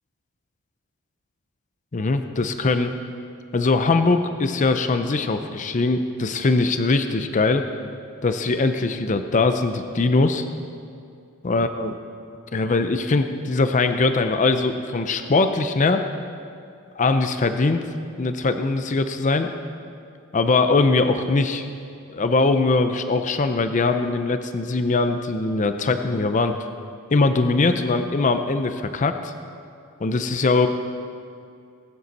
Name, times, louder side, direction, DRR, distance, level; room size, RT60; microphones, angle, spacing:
voice 1, 1.9-2.9 3.5-7.7 8.2-10.4 11.4-11.9 12.5-16.0 17.0-17.8 18.2-19.5 20.3-21.7 22.1-26.6 27.1-29.3 30.0-30.7, left 3 dB, 35° left, 8 dB, 0.5 m, -21 dB
19.0 x 9.3 x 4.1 m, 2.4 s
head